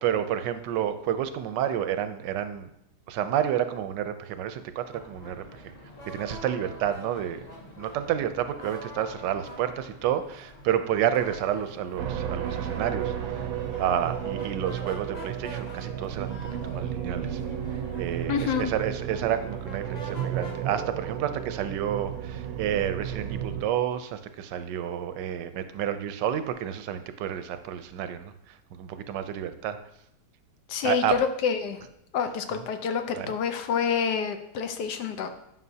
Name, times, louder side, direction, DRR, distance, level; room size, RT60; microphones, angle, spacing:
voice 1, 0.0-2.7 3.1-5.7 6.1-7.5 7.7-13.5 13.8-17.4 18.0-29.8 30.8-31.1 32.5-32.6 33.1-33.4, right 10 dB, 85° right, 10 dB, 1.2 m, -30 dB
sound 1, 4.9-20.6, equal, 30° left, 0.9 m, -45 dB
sound 2, 12.0-23.6, right 9 dB, 70° right, 0.9 m, -33 dB
voice 2, 18.3-18.7 30.7-31.8 32.1-35.3, left 6 dB, 75° left, 8 dB, 1.2 m, -27 dB
9.5 x 5.6 x 2.7 m, 0.81 s
omnidirectional pair, 1.8 m